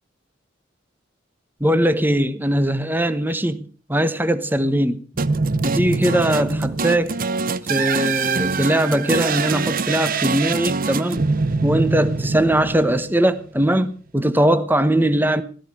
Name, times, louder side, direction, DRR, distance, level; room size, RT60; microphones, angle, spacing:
voice 1, 1.6-5.1 5.6-7.2 7.7-11.3 11.6-15.4, right 1 dB, 10° right, 1.1 m, -20 dB
sound 1, 5.2-13.4, right 4 dB, 45° right, 0.8 m, -24 dB
17.0 x 13.5 x 4.9 m
head